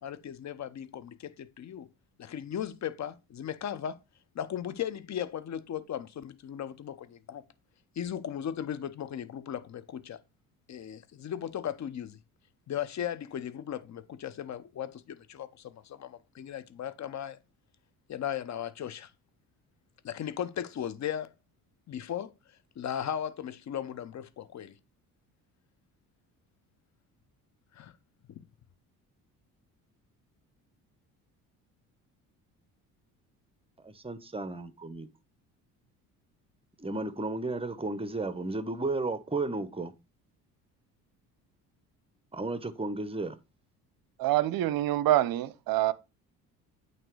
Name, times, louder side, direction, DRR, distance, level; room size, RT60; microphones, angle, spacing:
voice 1, 0.0-1.9 2.2-4.0 4.3-7.4 8.0-10.2 10.7-12.2 12.7-17.4 18.1-19.1 20.0-21.3 21.9-24.7 27.7-27.9 28.4-28.5, left 9 dB, 40° left, 0.8 m, -37 dB
voice 2, 33.8-35.1 36.8-39.9 42.3-43.4, right 2 dB, 15° right, 0.9 m, -33 dB
voice 3, 44.2-45.9, right 14 dB, 55° right, 0.7 m, -26 dB
8.9 x 3.0 x 4.7 m
hypercardioid pair, 55°, 44 cm